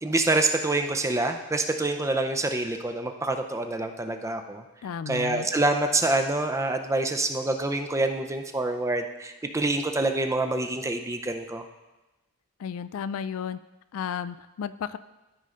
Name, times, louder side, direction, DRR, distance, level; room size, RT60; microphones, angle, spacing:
voice 1, 0.0-4.6 5.1-11.6, right 2 dB, 15° right, 6 dB, 0.5 m, -26 dB
voice 2, 4.8-5.5 12.6-13.6 13.9-15.0, left 7 dB, 70° left, 14 dB, 0.3 m, -33 dB
12.5 x 5.5 x 3.8 m, 1.1 s
head